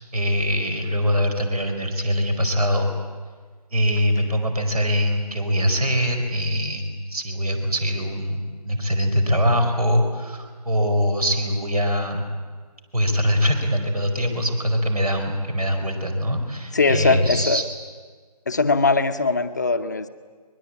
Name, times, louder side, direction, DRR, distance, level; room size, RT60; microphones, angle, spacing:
voice 1, 0.1-2.9 3.7-12.2 12.9-17.6, equal, 65° right, 6 dB, 4.8 m, -23 dB
voice 2, 16.7-17.6 18.5-20.1, left 3 dB, 25° left, 8 dB, 0.8 m, -20 dB
24.0 x 21.5 x 8.6 m, 1.5 s
figure-of-eight pair, 165°, 21 cm